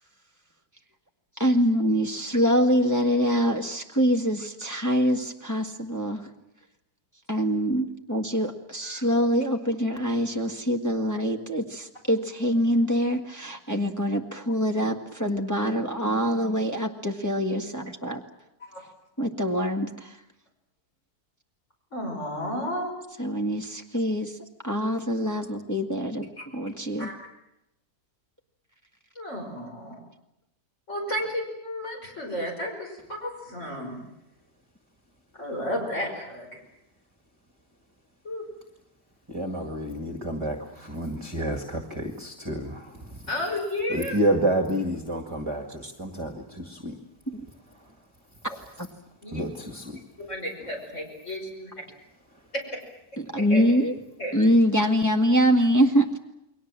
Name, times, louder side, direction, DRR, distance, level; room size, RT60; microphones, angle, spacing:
voice 1, 1.4-6.3 7.3-18.2 19.2-20.2 23.2-24.4 24.6-27.1 47.3-47.4 48.8-48.9 53.2-53.9 54.3-56.2, equal, 10° left, 3 dB, 1.6 m, -24 dB
voice 2, 21.9-22.9 27.0-27.1 29.2-30.0 30.9-34.0 35.4-36.6 38.2-38.4 43.3-44.1 49.2-49.4 50.3-51.7 53.4-53.6 54.2-54.3, left 1 dB, 50° left, 0 dB, 5.8 m, -32 dB
voice 3, 39.3-43.3 43.9-47.0 47.8-48.0 49.3-50.0, right 1 dB, 20° right, 5 dB, 2.0 m, -29 dB
29.5 x 22.0 x 7.4 m, 0.88 s
omnidirectional pair, 1.6 m